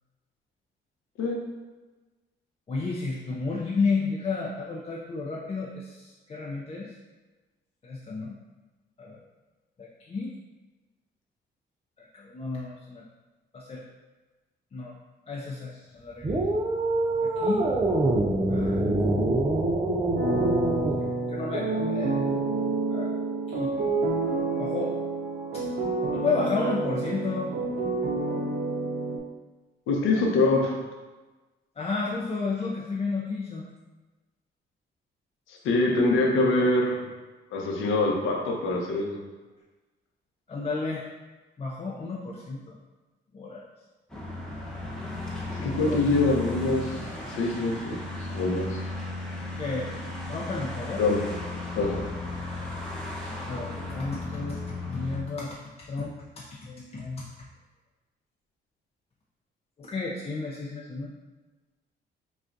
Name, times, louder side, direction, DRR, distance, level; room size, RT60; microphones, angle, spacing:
voice 1, 2.7-6.9 7.8-8.4 9.0-9.2 9.8-10.3 12.0-13.0 13.5-13.8 14.7-14.9 15.3-16.4 17.2-17.6 18.5-18.8 21.0-22.2 22.9-23.1 23.5-23.7 24.6-24.9 25.5-25.6 26.1-27.5 31.8-33.6 40.5-41.1 41.6-42.8 43.3-43.6 45.5-46.0 49.6-49.9 50.3-51.0 53.4-57.3 59.8-61.1, left 4 dB, 30° left, -3 dB, 0.5 m, -32 dB
sound 1, 16.2-21.0, right 2 dB, 25° right, 0.4 m, -25 dB
sound 2, 20.2-29.2, right 3 dB, 60° right, 0.7 m, -28 dB
voice 2, 29.9-30.7 35.5-37.1 37.5-39.2 45.6-46.9 47.3-48.0 48.3-48.8 51.0-51.2 51.8-52.0, left 2 dB, 90° left, -1 dB, 0.8 m, -24 dB
sound 3, 44.1-55.2, left 2 dB, 5° left, 0.9 m, -35 dB
5.0 x 2.4 x 2.6 m, 1.2 s
cardioid pair, 90°, 20 cm